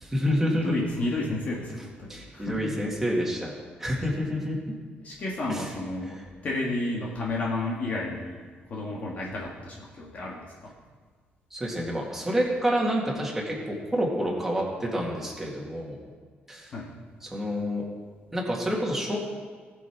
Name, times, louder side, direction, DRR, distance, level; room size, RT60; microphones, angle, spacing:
voice 1, 0.0-0.8 2.1-3.5 3.8-4.7 5.5-5.7 6.0-6.2 11.5-16.0 16.5-16.7 17.2-17.8 18.3-19.2, equal, 10° right, -3 dB, 2.3 m, -28 dB
voice 2, 0.6-2.7 5.0-8.4 8.7-10.7 16.7-16.9, left 2 dB, 40° left, -3 dB, 1.8 m, -32 dB
19.0 x 6.7 x 4.8 m, 1.5 s
cardioid pair, 170°, 4 cm